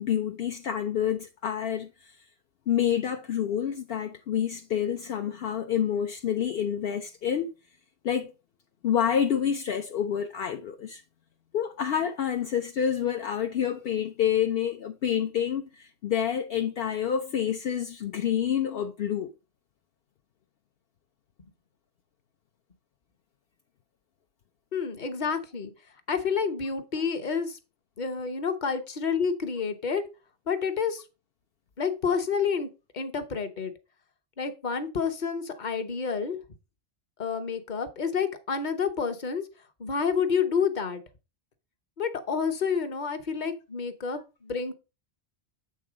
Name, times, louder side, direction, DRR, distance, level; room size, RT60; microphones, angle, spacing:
voice 1, 0.0-2.1 2.7-7.5 8.0-8.3 8.8-11.0 11.5-19.3, left 9 dB, 70° left, 0.8 m, -28 dB
voice 2, 24.7-25.7 26.1-27.6 28.0-30.0 30.5-31.1 31.8-32.7 32.9-33.7 34.4-36.4 37.2-39.5 39.8-41.0 42.0-44.7, left 6 dB, 50° left, 1.1 m, -29 dB
8.0 x 3.7 x 4.9 m
omnidirectional pair, 1.1 m